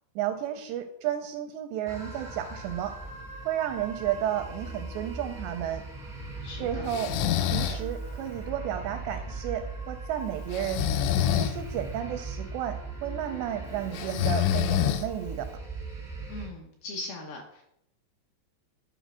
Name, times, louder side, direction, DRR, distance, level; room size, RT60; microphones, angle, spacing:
voice 1, 0.2-3.0 3.5-5.8 6.6-7.1 7.5-10.9 11.4-15.6, right 10 dB, 85° right, 7 dB, 2.5 m, -32 dB
sound 1, 1.8-16.5, right 3 dB, 25° right, 0.4 m, -39 dB
voice 2, 6.4-6.9 16.3-17.6, left 2 dB, 70° left, 0 dB, 2.4 m, -40 dB
Breathing, 6.9-7.8 10.5-11.6 13.9-15.3, left 11 dB, 85° left, 3.1 m, -26 dB
10.0 x 4.3 x 6.2 m, 0.76 s
omnidirectional pair, 5.3 m